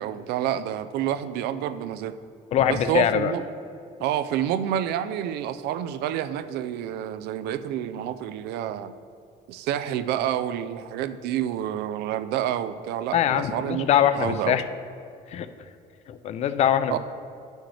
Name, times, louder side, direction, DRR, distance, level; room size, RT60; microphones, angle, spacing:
voice 1, 0.0-2.1 2.6-3.4 4.0-8.9 9.5-13.9 14.1-14.6 16.9-17.0, right 10 dB, 80° right, 12 dB, 0.4 m, -28 dB
voice 2, 2.5-3.3 13.1-14.7 15.3-15.5 16.1-17.0, left 10 dB, 40° left, 12 dB, 0.4 m, -23 dB
9.6 x 6.2 x 3.3 m, 2.4 s
cardioid pair, 150°, 16 cm